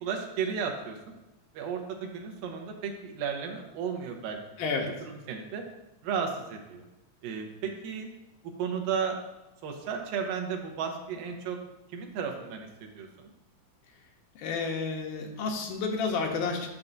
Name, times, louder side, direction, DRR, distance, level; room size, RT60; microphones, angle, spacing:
voice 1, 0.0-1.0 1.5-4.4 5.0-5.6 6.0-6.8 7.2-8.1 8.6-9.2 9.6-11.6 11.9-13.3, right 6 dB, 90° right, 2 dB, 2.7 m, -34 dB
voice 2, 4.6-4.9 14.4-16.7, left 4 dB, 75° left, 2 dB, 2.4 m, -30 dB
9.9 x 7.1 x 2.6 m, 1.0 s
omnidirectional pair, 3.8 m